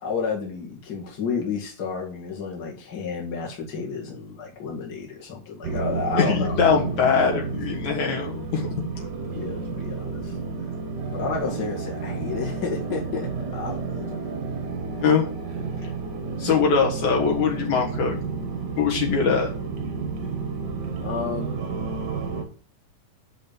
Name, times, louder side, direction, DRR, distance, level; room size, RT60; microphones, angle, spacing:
voice 1, 0.0-6.6 8.0-8.2 9.3-10.3 11.1-14.4 15.6-15.7 16.1-16.3 21.0-21.5, left 5 dB, 35° left, -2 dB, 2.3 m, -31 dB
sound 1, 5.6-22.4, right 4 dB, 55° right, 1.2 m, -31 dB
voice 2, 6.1-8.7 15.0-15.3 16.4-18.2 18.8-19.5, left 6 dB, 65° left, -1 dB, 2.8 m, -22 dB
6.4 x 5.8 x 6.7 m, 0.41 s
omnidirectional pair, 3.6 m